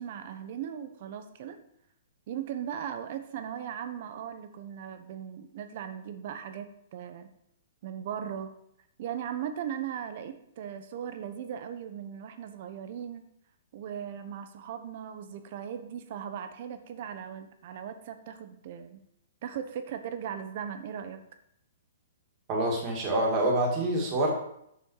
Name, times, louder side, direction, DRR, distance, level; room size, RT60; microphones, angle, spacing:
voice 1, 0.0-1.6 2.3-7.3 7.8-8.5 9.0-13.2 13.7-19.0 19.4-21.2, right 9 dB, 50° right, 9 dB, 1.0 m, -38 dB
voice 2, 22.5-24.3, right 1 dB, 30° right, -1 dB, 2.5 m, -26 dB
7.1 x 6.2 x 4.8 m, 0.75 s
hypercardioid pair, 150°, 0 cm